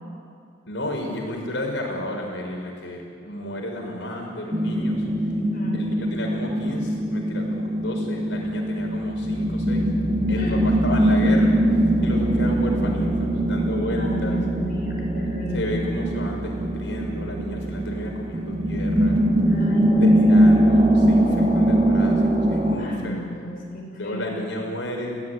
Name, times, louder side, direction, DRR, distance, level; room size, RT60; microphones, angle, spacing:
voice 1, 0.7-5.1 5.7-9.9 10.3-11.6 11.8-14.4 15.5-19.2 20.0-23.2 24.0-25.2, left 1 dB, 85° left, 1 dB, 5.9 m, -32 dB
sound 1, 4.5-22.8, right 1 dB, 30° right, 2.5 m, -21 dB
voice 2, 5.3-5.8 10.3-10.6 14.0-16.1 19.4-21.1 22.7-24.5, equal, 50° left, -2 dB, 7.9 m, -33 dB
28.0 x 17.0 x 9.6 m, 2.3 s
head